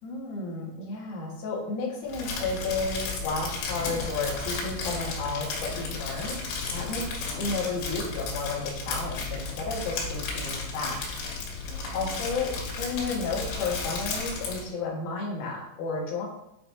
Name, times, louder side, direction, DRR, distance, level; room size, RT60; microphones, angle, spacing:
voice 1, 0.0-11.0 11.9-16.3, left 3 dB, 55° left, -3 dB, 2.6 m, -32 dB
Crumpling crinkling, 2.1-14.7, left 4 dB, 85° left, 3.9 m, -33 dB
8.9 x 5.4 x 2.8 m, 0.82 s
omnidirectional pair, 5.0 m